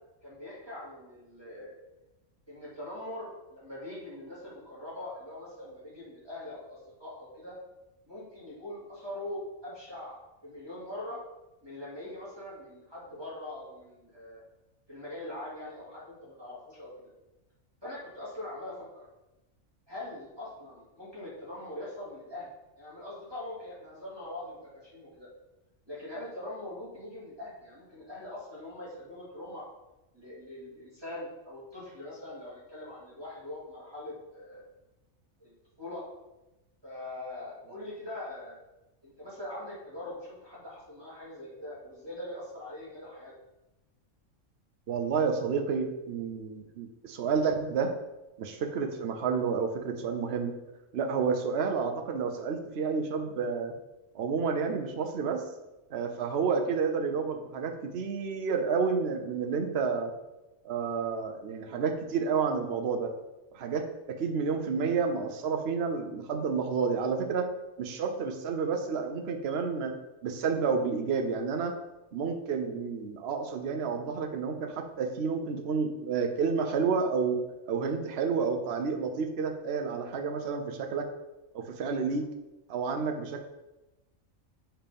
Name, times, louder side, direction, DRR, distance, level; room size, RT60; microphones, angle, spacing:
voice 1, 0.2-1.7 2.5-7.6 8.1-11.2 11.6-14.4 14.9-17.1 17.8-19.1 19.9-25.3 25.9-29.6 30.1-34.6 35.4-36.0 36.8-38.6 39.0-43.3, left 1 dB, 20° right, -10 dB, 2.6 m, -42 dB
voice 2, 44.9-47.9 48.4-50.5 50.9-53.7 54.1-55.4 55.9-60.1 60.6-63.1 63.5-67.5 67.8-69.9 70.2-71.7 72.1-77.4 77.7-81.1 81.5-82.3 82.7-83.5, right 5 dB, 55° right, 5 dB, 1.0 m, -30 dB
7.1 x 4.4 x 5.3 m, 1.0 s
omnidirectional pair, 1.4 m